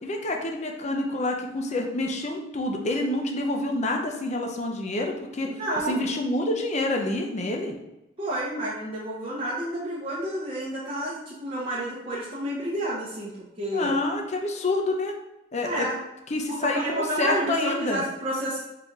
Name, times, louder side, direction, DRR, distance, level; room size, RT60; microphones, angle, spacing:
voice 1, 0.0-5.5 5.9-7.7 13.7-15.1 15.5-15.9 16.3-18.0, left 2 dB, 35° left, 2 dB, 0.6 m, -27 dB
voice 2, 5.4-6.0 8.2-13.9 15.6-16.0 16.5-18.6, right 1 dB, 30° right, -7 dB, 0.8 m, -30 dB
3.9 x 3.3 x 3.5 m, 0.96 s
head